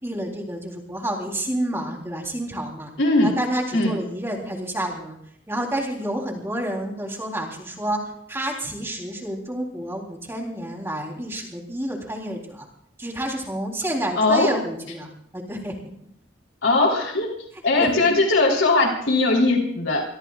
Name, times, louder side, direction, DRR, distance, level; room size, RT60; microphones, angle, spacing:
voice 1, 0.0-2.9 3.2-5.2 5.5-8.0 8.3-12.7 13.0-15.8 17.8-18.1, right 1 dB, 10° right, 0 dB, 3.6 m, -29 dB
voice 2, 3.0-3.3 3.7-4.0 14.2-14.5 16.6-17.3 17.6-20.0, left 2 dB, 85° left, -1 dB, 3.7 m, -19 dB
25.0 x 23.0 x 2.5 m, 0.72 s
head